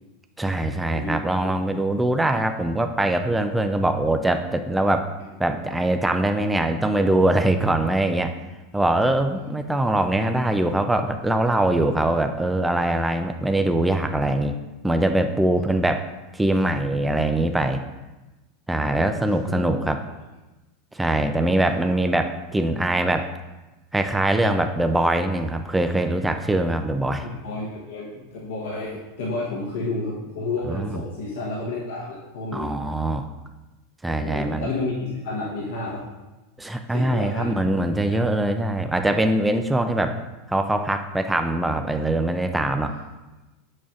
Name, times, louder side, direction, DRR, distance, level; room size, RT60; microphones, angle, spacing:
voice 1, 0.4-5.1 5.4-8.3 8.7-14.5 14.8-16.1 16.3-17.8 18.7-20.0 20.9-23.3 23.9-27.3 30.7-31.0 32.5-33.3 34.0-34.7 36.6-40.2 40.5-42.9, right 1 dB, 5° right, 6 dB, 0.4 m, -22 dB
voice 2, 18.8-19.2 19.5-19.9 21.4-21.8 27.2-32.8 34.2-36.0 36.9-37.6 38.1-38.2 42.8-43.0, left 2 dB, 80° left, -5 dB, 1.1 m, -31 dB
6.9 x 6.3 x 2.5 m, 1.1 s
supercardioid pair, 120°, 0 cm